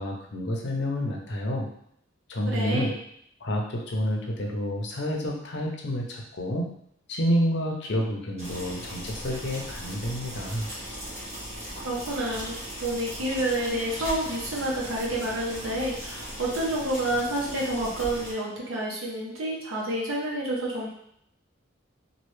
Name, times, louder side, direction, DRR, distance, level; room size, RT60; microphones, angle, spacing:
voice 1, 0.0-1.7 2.3-2.9 3.4-6.7 7.1-10.7, equal, 60° left, 0 dB, 0.6 m, -29 dB
voice 2, 2.5-2.9 11.8-20.9, right 1 dB, 85° right, -3 dB, 1.0 m, -29 dB
sound 1, 8.4-18.3, equal, 35° right, 1.2 m, -38 dB
3.1 x 2.6 x 3.1 m, 0.69 s
head